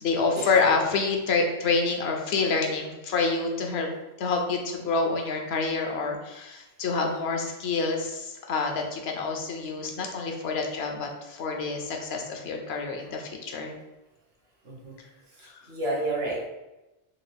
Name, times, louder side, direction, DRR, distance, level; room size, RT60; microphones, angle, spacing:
voice 1, 0.0-3.9 4.2-13.7 15.4-15.6, left 4 dB, 75° left, 2 dB, 0.9 m, -27 dB
voice 2, 14.6-15.0 15.7-16.5, right 2 dB, 70° right, -1 dB, 1.1 m, -30 dB
3.8 x 2.3 x 3.3 m, 1.0 s
omnidirectional pair, 1.1 m